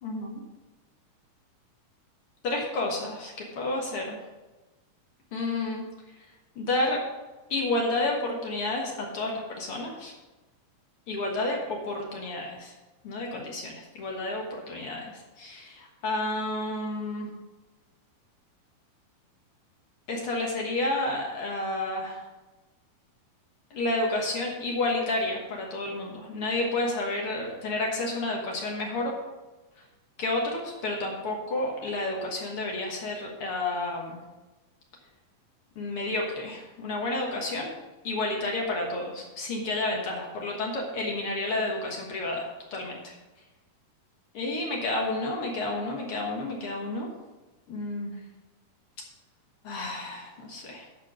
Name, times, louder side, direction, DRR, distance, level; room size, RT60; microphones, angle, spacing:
voice 1, 0.0-0.4 2.4-4.2 5.3-5.8 6.5-7.0 7.5-10.1 11.1-12.7 13.0-15.1 15.4-17.3 20.1-22.2 23.7-29.2 30.2-34.2 35.7-37.7 38.0-43.1 44.3-47.1 47.7-48.1 49.6-50.8, left 2 dB, 60° left, 0 dB, 1.5 m, -30 dB
12.5 x 4.6 x 6.2 m, 1.1 s
omnidirectional pair, 4.3 m